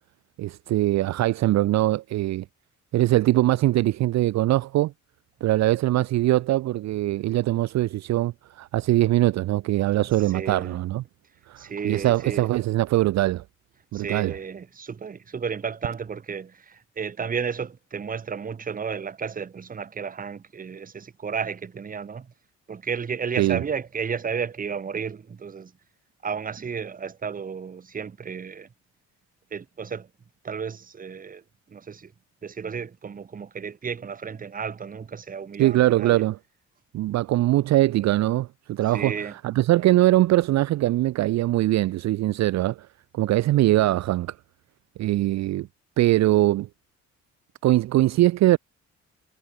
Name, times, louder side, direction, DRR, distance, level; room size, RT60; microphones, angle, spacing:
voice 1, 0.4-2.4 2.9-4.9 5.4-11.0 11.5-13.4 13.9-14.4 23.4-23.6 35.6-36.4 36.9-42.9 43.1-44.3 45.0-45.7 46.0-46.7 47.6-48.6, right 15 dB, 65° right, 0.5 m, -22 dB
voice 2, 10.3-10.8 11.6-12.5 13.9-16.5 17.0-22.3 22.7-25.7 26.2-28.7 29.5-30.1 30.4-31.4 31.7-32.1 32.4-36.2 38.9-39.3, right 6 dB, 30° right, 0.9 m, -32 dB
cardioid pair, 90°, 30 cm